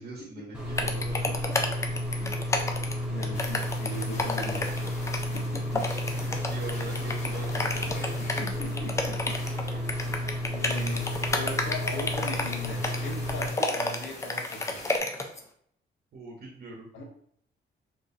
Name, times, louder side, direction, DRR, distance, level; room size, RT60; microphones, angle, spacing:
voice 1, 0.0-1.3 5.8-8.2 16.1-16.9, right 2 dB, 50° right, -3 dB, 1.1 m, -42 dB
sound 1, 0.5-13.5, equal, 5° right, 0.8 m, -32 dB
sound 2, 0.8-15.4, left 2 dB, 15° left, 0.3 m, -30 dB
voice 2, 1.2-1.5 2.0-2.3 3.1-5.1 5.3-5.8 8.4-9.4 9.7-9.8 10.5-14.8 16.9-17.0, left 1 dB, 70° left, 0 dB, 1.1 m, -39 dB
sound 3, 3.3-15.0, left 2 dB, 35° left, 0.9 m, -45 dB
4.5 x 3.1 x 2.7 m, 0.65 s
wide cardioid pair, 170°, 20 cm